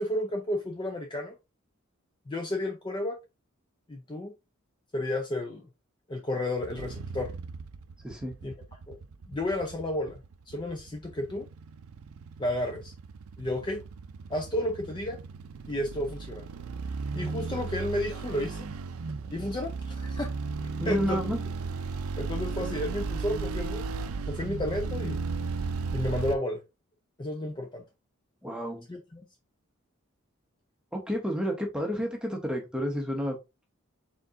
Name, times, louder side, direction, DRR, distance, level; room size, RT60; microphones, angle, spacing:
voice 1, 0.0-1.3 2.3-3.2 3.9-4.3 4.9-5.7 6.1-7.3 8.4-8.5 8.9-9.0 9.3-11.5 12.4-12.9 13.4-13.8 14.3-15.2 15.7-16.4 17.1-18.7 19.3-20.3 20.6-21.2 22.2-23.9 24.3-25.2 25.9-26.6 27.2-27.8 28.9-29.3, left 1 dB, 20° left, 0.5 m, -32 dB
sound 1, 6.6-26.4, right 4 dB, 85° right, 0.4 m, -36 dB
voice 2, 8.0-8.3 20.8-21.4 28.4-28.9 30.9-33.4, equal, 5° right, 0.9 m, -30 dB
4.5 x 3.7 x 2.5 m
head